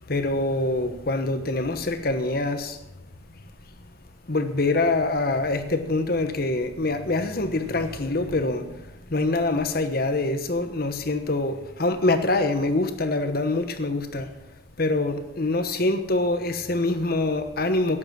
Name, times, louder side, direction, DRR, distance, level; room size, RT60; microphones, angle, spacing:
voice 1, 0.1-2.8 4.3-14.3 14.8-18.0, left 2 dB, 50° left, 1.2 m, -25 dB
12.0 x 10.0 x 6.1 m
head